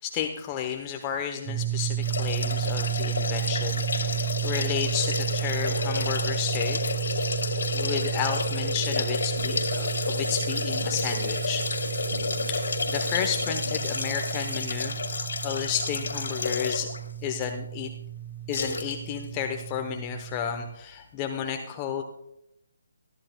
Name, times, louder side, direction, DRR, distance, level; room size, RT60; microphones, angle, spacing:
voice 1, 0.0-7.4 7.7-11.8 12.5-15.0 15.4-16.9 17.2-17.9 18.5-22.0, left 8 dB, 25° left, 4 dB, 0.8 m, -32 dB
sound 1, 1.5-20.8, right 12 dB, 25° right, 2.2 m, -33 dB
sound 2, 2.0-17.0 17.4-17.5 18.5-18.9 19.2-19.3, left 4 dB, 60° left, 1.9 m, -30 dB
sound 3, 9.4-14.8, right 1 dB, 85° right, 2.0 m, -39 dB
20.5 x 13.0 x 2.3 m, 0.82 s
figure-of-eight pair, 145°, 0 cm